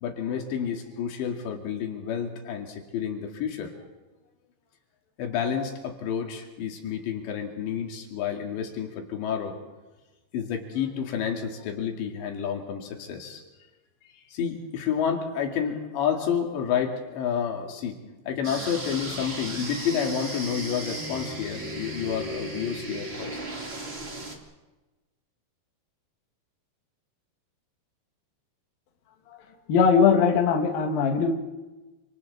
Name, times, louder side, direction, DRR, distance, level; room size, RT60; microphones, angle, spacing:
voice 1, 0.0-3.8 5.2-9.6 10.3-13.4 14.0-18.0 18.3-23.4, left 8 dB, 90° left, 2 dB, 4.6 m, -30 dB
sound 1, 18.4-24.4, right 1 dB, 20° right, 1.6 m, -36 dB
voice 2, 29.7-31.3, left 6 dB, 60° left, 3 dB, 3.4 m, -20 dB
28.5 x 26.5 x 4.1 m, 1.1 s
omnidirectional pair, 5.0 m